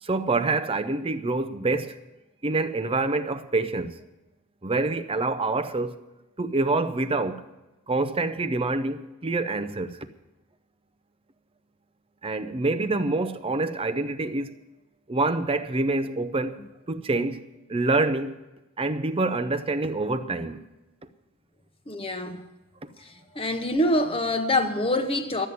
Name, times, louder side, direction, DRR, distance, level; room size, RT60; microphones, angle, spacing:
voice 1, 0.0-2.0 2.4-3.9 4.6-6.0 6.4-7.4 7.9-10.1 12.2-14.6 15.1-16.6 16.9-17.4 17.7-18.4 18.8-20.6 22.8-22.9, right 3 dB, 25° right, 0.6 m, -26 dB
voice 2, 21.9-22.4 23.3-25.5, left 1 dB, 25° left, 0.9 m, -25 dB
12.5 x 8.3 x 9.4 m
head